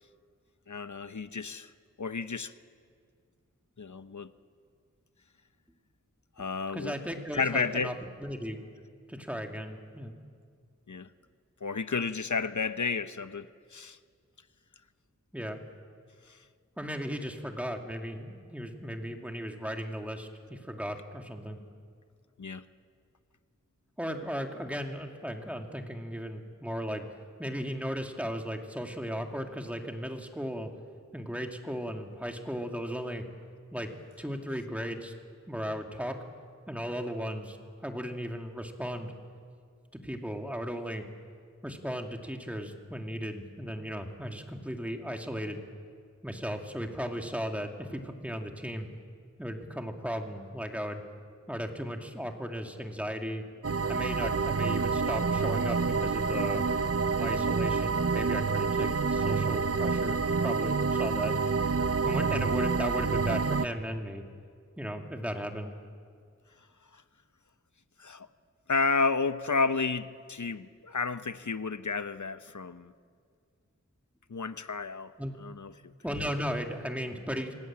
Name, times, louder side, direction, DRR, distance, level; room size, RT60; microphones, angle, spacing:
voice 1, 0.7-1.7 2.0-2.5 3.8-4.3 6.4-7.0 7.3-7.9 10.9-11.1 11.6-14.0 16.3-16.4 22.4-22.6 66.9-67.0 68.0-68.3 68.7-72.9 74.3-75.1 75.4-75.9, left 4 dB, 70° left, 12 dB, 0.9 m, -31 dB
voice 2, 6.7-7.9 8.2-8.6 9.1-10.1 15.3-15.6 16.8-21.6 24.0-27.1 27.4-30.7 31.1-33.2 33.7-33.9 34.2-35.1 35.5-36.1 36.7-39.1 40.0-41.0 41.6-45.6 46.2-48.9 49.4-51.0 51.5-53.4 53.9-56.6 57.1-61.3 62.0-64.2 64.8-65.7 75.2-75.3 76.0-77.5, equal, 5° right, 3 dB, 2.4 m, -36 dB
sound 1, 53.6-63.7, right 4 dB, 50° right, 0.8 m, -28 dB
25.5 x 18.5 x 8.8 m, 2.1 s
wide cardioid pair, 45°, 30 cm